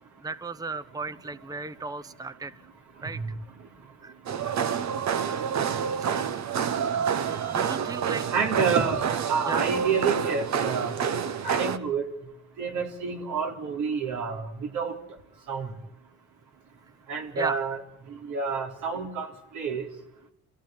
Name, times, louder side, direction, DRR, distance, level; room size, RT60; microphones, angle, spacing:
voice 1, 0.2-2.5 3.0-3.2 4.0-4.1 4.4-4.6 5.9-6.3 6.9-8.3 9.5-9.7 17.4-17.6, right 3 dB, 10° right, 15 dB, 0.8 m, -36 dB
sound 1, 4.3-11.8, right 7 dB, 65° right, 1.3 m, -28 dB
voice 2, 8.3-10.9 11.4-12.1 12.6-15.0 15.5-15.7 17.1-17.8 18.1-19.3 19.5-19.9, right 5 dB, 80° right, 2 dB, 3.9 m, -28 dB
27.0 x 15.5 x 9.5 m, 0.83 s
cardioid pair, 90°, 30 cm